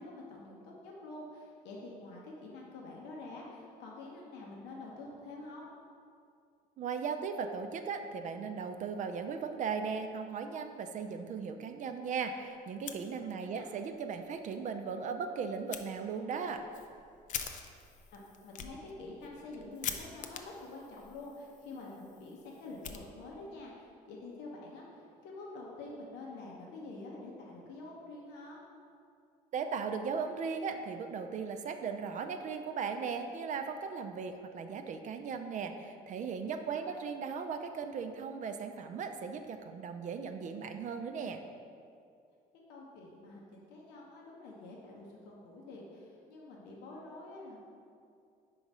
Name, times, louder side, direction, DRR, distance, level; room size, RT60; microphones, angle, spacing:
voice 1, 0.0-5.7 13.5-13.7 18.1-28.6 36.6-36.9 42.7-47.6, left 2 dB, 90° left, -3 dB, 0.9 m, -47 dB
voice 2, 6.8-16.7 29.5-41.4, right 5 dB, 50° right, 7 dB, 0.4 m, -37 dB
Fire, 12.7-13.6 14.0-14.1 14.5-14.6 15.7-15.8 16.4-23.6, left 7 dB, 50° left, 0.5 m, -45 dB
4.8 x 3.8 x 5.3 m, 2.4 s
cardioid pair, 110°, 17 cm